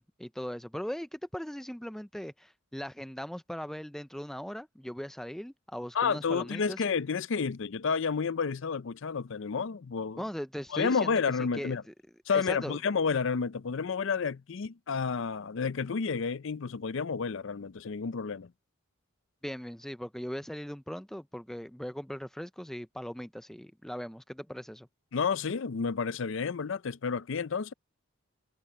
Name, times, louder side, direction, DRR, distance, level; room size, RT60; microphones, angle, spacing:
voice 1, 0.0-6.8 10.2-11.9 12.3-12.8 19.4-24.9, equal, ahead, 0.4 m, -39 dB
voice 2, 5.9-10.2 10.7-11.8 12.3-18.5 25.1-27.7, left 5 dB, 60° left, 0.5 m, -30 dB
head